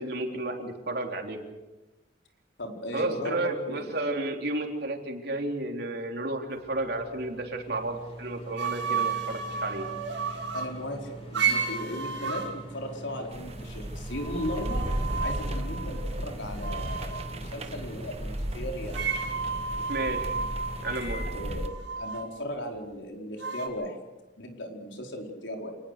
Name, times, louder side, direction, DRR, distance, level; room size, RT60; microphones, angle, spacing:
voice 1, 0.0-1.4 2.9-9.8 19.9-20.3 20.8-21.2, right 2 dB, 60° right, 3 dB, 3.6 m, -32 dB
voice 2, 2.6-3.9 10.5-14.9 15.2-19.0 21.3-24.0 24.4-25.8, equal, 80° left, 2 dB, 4.7 m, -37 dB
sound 1, 6.5-23.0, right 1 dB, 35° left, 6.4 m, -44 dB
sound 2, 8.6-10.7 11.3-12.5 14.1-16.3 16.6-17.4 18.9-22.3 23.4-23.7, right 5 dB, 90° right, 6.1 m, -32 dB
sound 3, 13.3-21.7, right 1 dB, 35° right, 1.5 m, -35 dB
28.0 x 19.5 x 6.7 m, 1.1 s
head